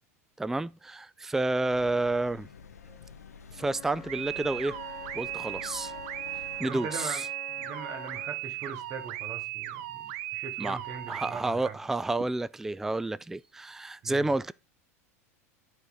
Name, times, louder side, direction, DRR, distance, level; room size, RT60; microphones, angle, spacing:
voice 1, 0.4-2.5 3.5-4.8 5.1-5.9 6.6-7.3 10.6-10.8 11.1-14.5, right 2 dB, 5° right, 0.3 m, -30 dB
sound 1, 1.7-6.7, left 6 dB, 85° left, 0.9 m, -49 dB
Wind instrument woodwind instrument, 3.5-8.5, left 10 dB, 35° left, 1.1 m, -47 dB
sound 2, 4.1-11.3, right 15 dB, 55° right, 0.9 m, -37 dB
voice 2, 6.6-11.8 14.0-14.3, right 5 dB, 40° right, 2.2 m, -41 dB
12.0 x 4.2 x 3.9 m
hypercardioid pair, 90°, 8 cm